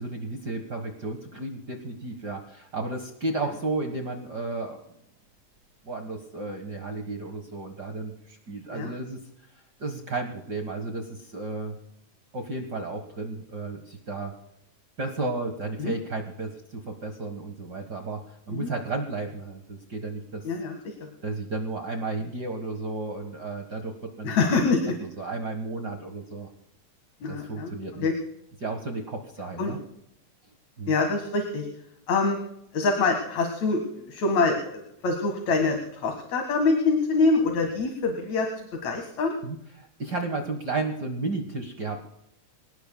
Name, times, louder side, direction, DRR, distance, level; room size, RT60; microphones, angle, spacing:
voice 1, 0.0-4.9 5.8-9.2 9.8-11.7 12.3-14.3 15.0-18.2 18.5-20.4 21.2-24.5 25.0-26.5 27.3-28.1 28.6-29.8 30.8-30.9 39.4-42.0, right 3 dB, 45° right, 4 dB, 1.3 m, -33 dB
voice 2, 20.4-20.8 24.2-24.9 27.2-27.7 28.0-28.1 29.6-29.7 30.9-31.7 32.1-32.4 32.7-38.5 38.8-39.4, left 3 dB, 60° left, 3 dB, 2.9 m, -25 dB
26.5 x 18.0 x 2.3 m, 0.75 s
omnidirectional pair, 3.9 m